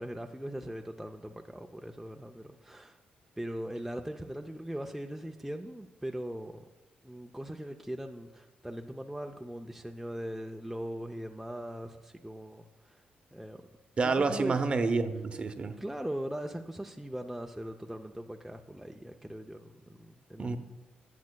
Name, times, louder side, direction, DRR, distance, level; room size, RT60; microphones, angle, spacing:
voice 1, 0.0-3.0 3.4-6.7 7.0-13.0 13.3-13.6 14.0-14.6 15.8-20.6, right 1 dB, 5° right, 3 dB, 0.4 m, -40 dB
voice 2, 14.0-15.8 20.4-20.6, right 4 dB, 35° right, 8 dB, 0.7 m, -28 dB
15.0 x 9.4 x 2.2 m, 1.2 s
cardioid pair, 110°, 3 cm